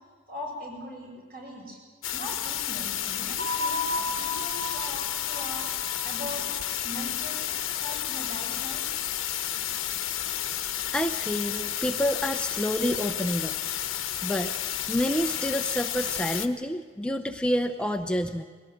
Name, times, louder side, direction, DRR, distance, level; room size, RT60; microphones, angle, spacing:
voice 1, 0.3-1.8 2.1-5.7 6.0-6.6 6.8-8.8, left 1 dB, 50° right, -1 dB, 7.7 m, -40 dB
sound 1, 2.0-16.5, left 11 dB, 80° left, 1.1 m, -31 dB
sound 2, 3.4-8.0, left 1 dB, 70° right, 4.3 m, -35 dB
voice 2, 10.9-13.6 14.2-14.5 14.9-18.4, equal, 5° left, 5 dB, 0.6 m, -28 dB
21.0 x 18.0 x 7.9 m, 1.4 s
head